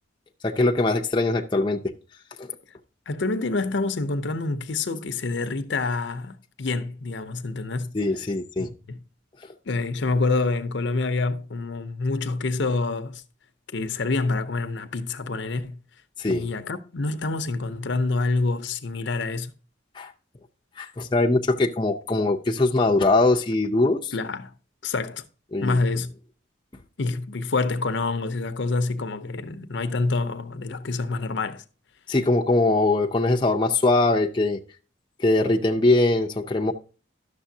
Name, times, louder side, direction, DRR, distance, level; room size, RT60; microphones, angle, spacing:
voice 1, 0.4-1.8 2.4-2.5 7.9-8.7 16.2-16.5 20.0-20.1 20.8-24.1 25.5-25.8 32.1-34.6 35.2-36.7, left 2 dB, 25° left, 0.5 m, -22 dB
voice 2, 3.1-7.9 8.6-9.0 9.7-13.2 13.7-15.8 16.3-19.5 24.1-24.5 24.8-25.2 25.6-26.1 27.0-31.6, left 3 dB, 65° left, 0.6 m, -27 dB
11.5 x 6.6 x 2.7 m
head